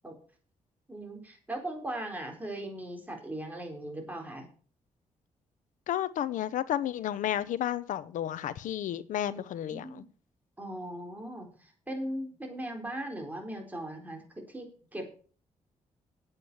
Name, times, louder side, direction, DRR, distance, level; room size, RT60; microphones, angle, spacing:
voice 1, 0.9-4.5 9.3-9.4 9.7-10.1 10.6-15.1, right 1 dB, 15° right, 2 dB, 4.2 m, -39 dB
voice 2, 5.9-10.0, left 11 dB, 85° left, 15 dB, 0.8 m, -32 dB
8.7 x 8.2 x 6.8 m, 0.42 s
cardioid pair, 90°, 13 cm